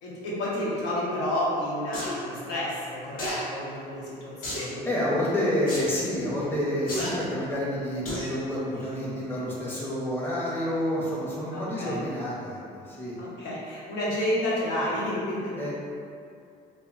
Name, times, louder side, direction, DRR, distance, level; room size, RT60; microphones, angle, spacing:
voice 1, 0.0-4.8 11.5-12.0 13.2-15.6, left 1 dB, 85° left, -8 dB, 0.9 m, -30 dB
sound 1, 1.9-2.2 3.2-3.4 4.4-4.7 5.7-5.9 6.9-7.1 8.0-8.3 8.8-8.9, left 1 dB, 55° left, 0.8 m, -32 dB
voice 2, 4.8-13.2 15.6-15.7, left 1 dB, 10° left, -7 dB, 0.6 m, -29 dB
2.2 x 2.1 x 3.7 m, 2.4 s
cardioid pair, 110°, 17 cm